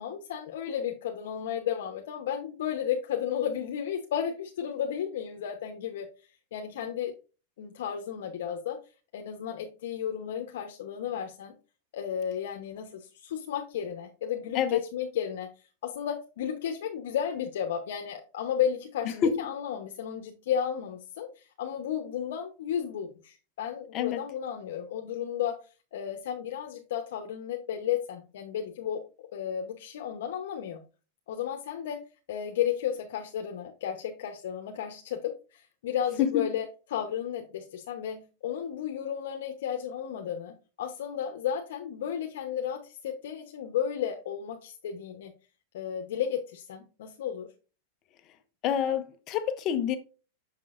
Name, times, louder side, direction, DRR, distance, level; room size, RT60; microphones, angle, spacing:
voice 1, 0.0-6.1 6.5-7.1 7.6-8.8 9.1-11.5 11.9-15.5 15.8-25.6 25.9-29.0 29.3-30.8 31.3-32.0 32.3-36.7 36.9-45.3 45.7-47.5, left 9 dB, 70° left, 0.9 m, -33 dB
voice 2, 19.2-19.5 23.9-24.2 36.2-36.4 48.6-50.0, left 8 dB, 30° left, 0.6 m, -27 dB
6.6 x 6.0 x 2.5 m
supercardioid pair, 165°, 0 cm